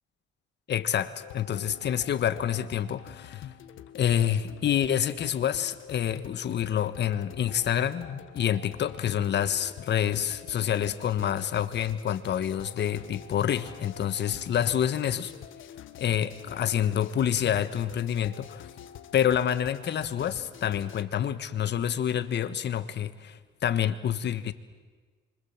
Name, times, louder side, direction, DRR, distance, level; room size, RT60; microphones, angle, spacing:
voice 1, 0.7-3.5 3.9-15.3 16.0-18.6 19.1-24.5, left 9 dB, 60° left, 13 dB, 1.4 m, -27 dB
sound 1, 1.2-21.0, left 10 dB, 80° left, 1.5 m, -46 dB
26.5 x 25.0 x 7.4 m, 1.4 s
cardioid pair, 90°, 20 cm